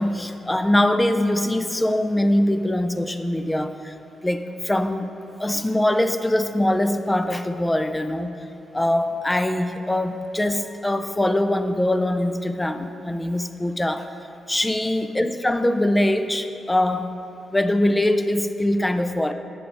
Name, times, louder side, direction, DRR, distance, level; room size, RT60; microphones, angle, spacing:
voice 1, 0.0-3.9 4.2-5.1 5.4-8.3 8.7-14.1 14.5-17.2 17.5-19.3, left 1 dB, 10° left, 9 dB, 0.3 m, -22 dB
9.1 x 4.9 x 4.7 m, 2.7 s
cardioid pair, 130°, 0 cm